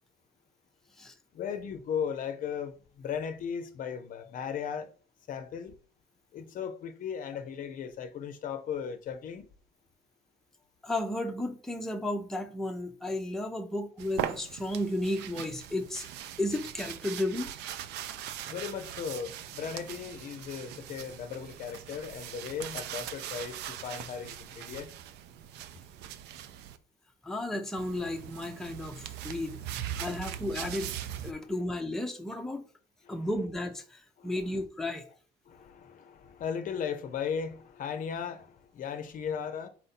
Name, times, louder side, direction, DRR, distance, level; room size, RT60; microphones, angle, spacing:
voice 1, 1.3-4.9 5.3-5.8 6.3-9.5 18.5-24.9 29.6-29.7 30.0-30.1 31.3-31.5 33.0-33.3 34.2-34.3 35.5-39.7, left 7 dB, 55° left, 0.5 m, -37 dB
voice 2, 10.8-16.1 16.4-17.5 27.2-29.6 30.0-30.9 31.2-32.6 33.1-35.1, left 1 dB, 5° left, 0.5 m, -33 dB
sound 1, 14.0-26.8 27.8-31.3, right 11 dB, 80° right, 0.4 m, -40 dB
4.3 x 2.6 x 4.1 m
cardioid pair, 110°, 17 cm